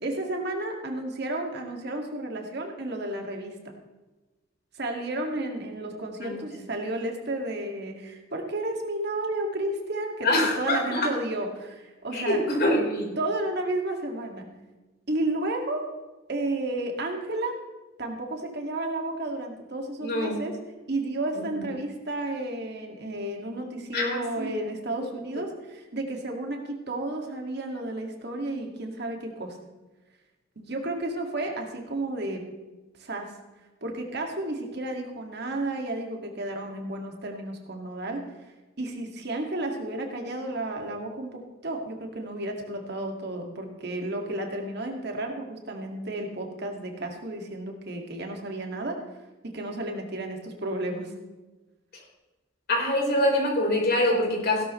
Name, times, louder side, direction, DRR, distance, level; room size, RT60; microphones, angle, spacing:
voice 1, 0.0-3.7 4.7-10.3 10.6-12.4 13.2-14.5 15.1-15.9 16.3-17.6 18.0-20.6 20.9-29.6 30.6-32.4 33.0-33.3 33.8-38.2 38.8-49.0 49.4-51.1, right 2 dB, 60° right, 2 dB, 2.1 m, -32 dB
voice 2, 10.2-11.1 12.1-13.1 20.0-20.4 21.5-21.7 23.9-24.5 25.0-25.1 52.7-54.6, left 1 dB, 55° left, -2 dB, 4.3 m, -25 dB
16.5 x 12.5 x 3.2 m, 1.2 s
head